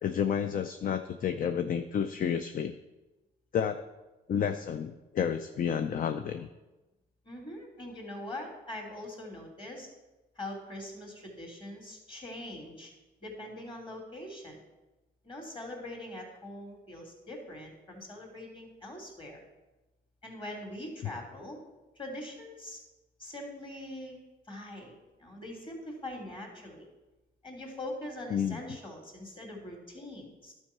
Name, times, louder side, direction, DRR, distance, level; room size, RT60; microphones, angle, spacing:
voice 1, 0.0-2.7 3.5-3.8 4.3-6.5 28.3-28.6, left 8 dB, 45° left, 9 dB, 0.5 m, -30 dB
voice 2, 7.2-9.9 10.4-12.9 13.2-14.6 15.2-19.4 20.2-21.6 22.0-22.8 23.2-24.2 24.5-26.9 27.4-30.5, left 1 dB, 25° left, 0 dB, 2.7 m, -42 dB
11.5 x 4.6 x 5.9 m, 1.1 s
cardioid pair, 90°, 20 cm